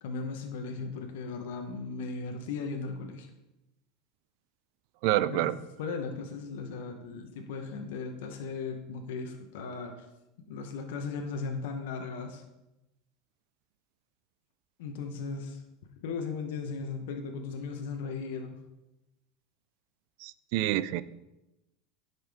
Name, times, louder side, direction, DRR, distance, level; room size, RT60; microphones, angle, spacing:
voice 1, 0.0-3.3 5.3-5.5 5.8-9.9 10.5-12.4 14.8-15.6 16.0-18.6 20.6-20.7, left 4 dB, 80° left, 3 dB, 1.0 m, -37 dB
voice 2, 5.0-5.5 20.2-21.0, right 14 dB, 60° right, 17 dB, 0.3 m, -27 dB
10.0 x 5.7 x 3.6 m, 0.96 s
supercardioid pair, 135°, 0 cm